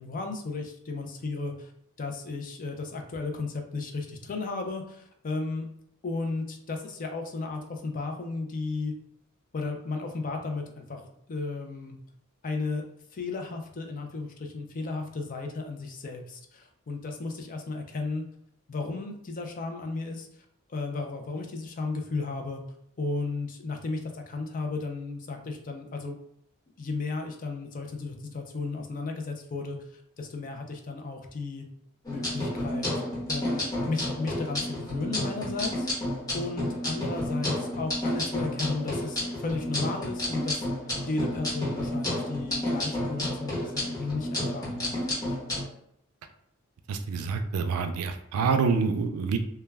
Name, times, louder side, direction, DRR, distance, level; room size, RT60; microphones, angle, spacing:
voice 1, 0.0-1.7 2.0-5.7 6.0-8.9 9.5-11.0 11.3-12.0 12.4-12.8 13.1-18.2 18.7-20.3 20.7-22.6 23.0-26.2 26.8-31.6 32.1-40.7 41.1-45.4, left 3 dB, 40° left, 4 dB, 0.4 m, -34 dB
sound 1, 32.0-45.6, left 1 dB, 15° left, 0.9 m, -31 dB
voice 2, 46.9-49.4, right 5 dB, 85° right, 7 dB, 0.3 m, -27 dB
2.2 x 2.2 x 3.2 m, 0.74 s
head